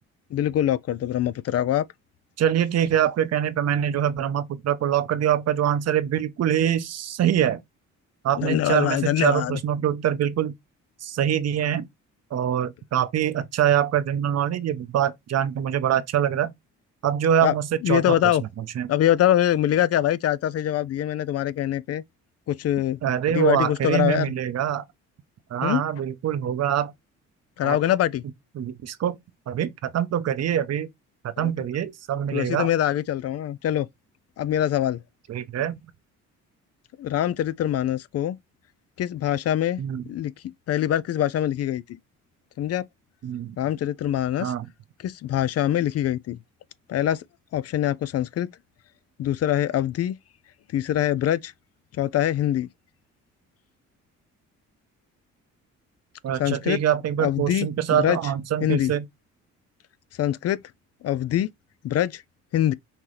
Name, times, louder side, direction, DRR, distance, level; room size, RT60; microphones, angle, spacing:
voice 1, 0.3-1.8 8.4-9.6 17.4-17.5 17.8-18.4 18.9-22.0 22.5-23.0 23.3-24.3 25.6-25.8 27.6-28.2 31.4-31.5 32.3-33.9 34.4-35.0 37.0-38.4 39.0-39.8 40.1-40.3 40.7-42.0 42.6-42.8 43.6-44.5 45.0-46.4 46.9-47.2 47.5-48.5 49.2-50.2 50.7-51.5 52.0-52.7 56.4-56.8 57.2-58.2 58.6-58.9 60.2-60.6 61.0-61.5 61.8-62.2 62.5-62.7, left 12 dB, 55° left, 0.4 m, -24 dB
voice 2, 2.4-7.6 8.2-10.5 11.0-11.9 12.3-16.5 17.0-18.9 23.0-24.8 25.5-26.9 27.6-27.8 28.6-29.2 29.5-30.9 31.2-32.7 35.3-35.8 39.8-40.0 43.2-43.6 44.4-44.7 56.2-59.1, right 10 dB, 60° right, 0.7 m, -24 dB
5.7 x 2.9 x 3.2 m
cardioid pair, 90°, 30 cm